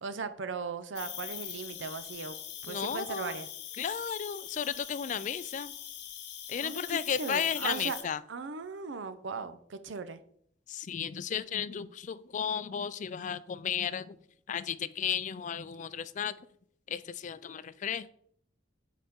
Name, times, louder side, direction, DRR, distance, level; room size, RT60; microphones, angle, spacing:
voice 1, 0.0-2.4 2.6-3.5 6.6-8.0 8.3-10.2, right 5 dB, 90° right, 12 dB, 0.6 m, -38 dB
Cricket, 1.0-8.0, left 10 dB, 65° left, 0.8 m, -42 dB
voice 2, 2.7-3.4 3.8-5.7 6.5-8.2 10.7-14.2 14.5-16.3 16.9-18.1, left 8 dB, 40° left, 15 dB, 0.3 m, -34 dB
8.5 x 4.1 x 3.6 m, 0.64 s
head